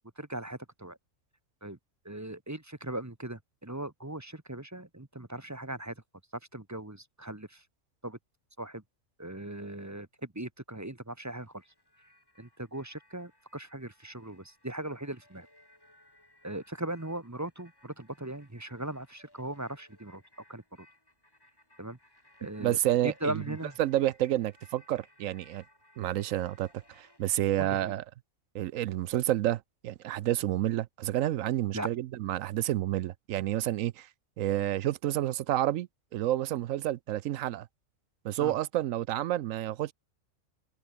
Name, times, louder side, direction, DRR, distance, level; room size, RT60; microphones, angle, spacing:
voice 1, 0.2-1.0 1.6-1.8 2.0-5.9 6.5-7.6 8.0-8.2 8.6-8.8 9.2-11.6 12.4-15.5 16.4-20.2 20.5-20.9 21.8-22.0 22.4-22.8 23.0-23.8 27.6-27.9 31.7-31.9 38.4-38.6, right 1 dB, 15° right, 1.2 m, -39 dB
sound 1, 11.2-27.3, left 1 dB, 15° left, 3.5 m, -62 dB
voice 2, 22.6-23.4 23.8-25.6 26.0-28.0 28.5-34.1 34.4-37.7 38.2-39.9, right 13 dB, 70° right, 0.9 m, -29 dB
omnidirectional pair, 1.5 m